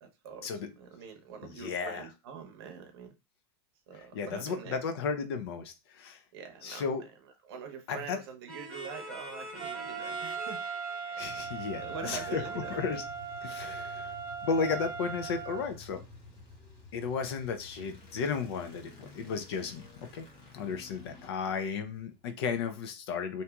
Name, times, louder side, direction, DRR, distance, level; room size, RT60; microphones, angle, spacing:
voice 1, 0.0-0.5 0.8-3.1 3.9-4.8 6.3-6.9 7.4-10.6 11.8-12.8 21.2-21.5, right 6 dB, 75° right, 0.7 m, -44 dB
voice 2, 1.4-2.0 4.1-6.2 6.6-7.0 7.9-8.2 11.2-12.4 12.7-13.0 13.4-14.2 14.4-16.0 16.9-19.9 20.1-20.2 20.5-23.4, left 5 dB, 80° left, 0.6 m, -34 dB
sound 1, 8.5-13.1, right 1 dB, 5° left, 0.9 m, -46 dB
Trumpet, 9.6-15.7, right 6 dB, 25° right, 0.4 m, -39 dB
sound 2, 11.4-22.5, left 4 dB, 40° left, 1.0 m, -52 dB
2.9 x 2.6 x 2.2 m
supercardioid pair, 175°, 13 cm